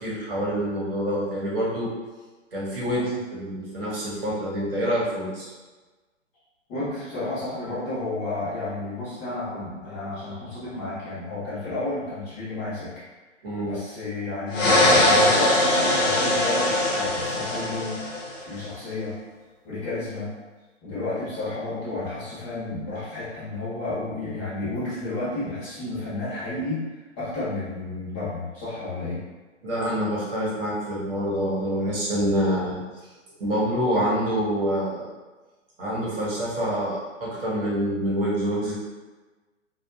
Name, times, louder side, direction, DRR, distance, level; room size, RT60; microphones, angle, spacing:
voice 1, 0.0-1.9 2.5-3.0 3.3-5.5 13.4-13.7 29.6-32.8 33.4-35.1 35.8-38.7, equal, 50° right, -7 dB, 1.1 m, -26 dB
voice 2, 2.8-3.2 6.7-12.9 13.6-18.0 18.5-19.1 19.6-20.3 20.8-26.8 27.2-29.2, left 2 dB, 20° left, -11 dB, 0.9 m, -31 dB
sound 1, 14.5-18.4, left 1 dB, 75° left, 0.9 m, -21 dB
2.5 x 2.4 x 2.4 m, 1.2 s
figure-of-eight pair, 135°, 38 cm